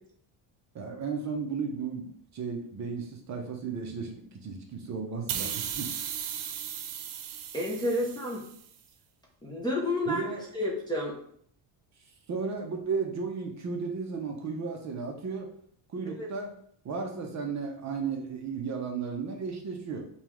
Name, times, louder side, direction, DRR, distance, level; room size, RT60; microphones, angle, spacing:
voice 1, 0.7-5.9 10.1-10.4 12.3-15.5 15.9-16.5 16.8-20.0, right 5 dB, 35° right, 2 dB, 0.6 m, -34 dB
sound 1, 5.3-8.7, right 9 dB, 90° right, 0.7 m, -36 dB
voice 2, 7.5-8.4 9.4-10.3 10.5-11.2 16.1-16.3, left 1 dB, 10° left, -5 dB, 0.5 m, -30 dB
5.3 x 2.3 x 3.0 m, 0.64 s
cardioid pair, 155°, 48 cm